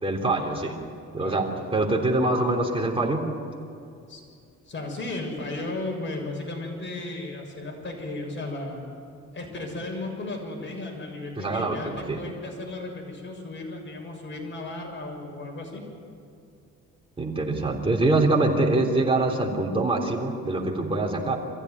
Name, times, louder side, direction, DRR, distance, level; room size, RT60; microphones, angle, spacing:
voice 1, 0.0-0.8 1.1-3.2 11.4-12.2 17.2-21.4, right 2 dB, 20° right, 0 dB, 3.6 m, -24 dB
voice 2, 4.7-8.8 9.3-15.8, left 2 dB, 40° left, 1 dB, 6.9 m, -35 dB
24.0 x 15.5 x 9.7 m, 2.5 s
cardioid pair, 90°, 30 cm